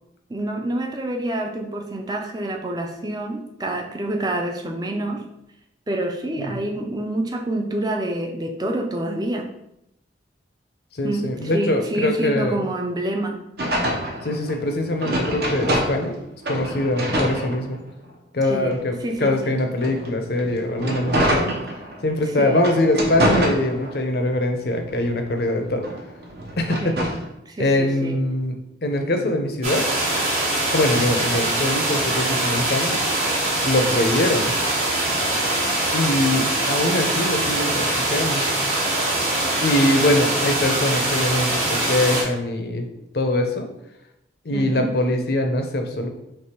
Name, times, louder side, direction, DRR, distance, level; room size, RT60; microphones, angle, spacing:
voice 1, 0.3-5.2 5.9-9.5 11.0-13.4 18.4-19.6 22.2-22.7 26.8-27.1 27.5-28.2 44.5-44.9, right 1 dB, 20° right, 2 dB, 0.5 m, -27 dB
voice 2, 10.9-12.6 14.2-16.2 16.5-17.8 18.3-18.9 19.2-21.5 22.0-25.9 26.6-27.0 27.6-28.5 28.8-29.9 30.7-33.0 33.6-34.6 35.9-38.5 39.6-42.9 43.1-43.7 44.4-46.1, left 1 dB, 55° left, 4 dB, 0.6 m, -22 dB
sound 1, 13.6-16.2 16.4-18.1 18.6-22.1 22.6-24.2 24.6-27.3, right 1 dB, 60° right, 0.8 m, -26 dB
sound 2, 29.6-42.2, right 1 dB, 40° right, 1.2 m, -23 dB
3.4 x 3.1 x 4.3 m, 0.83 s
head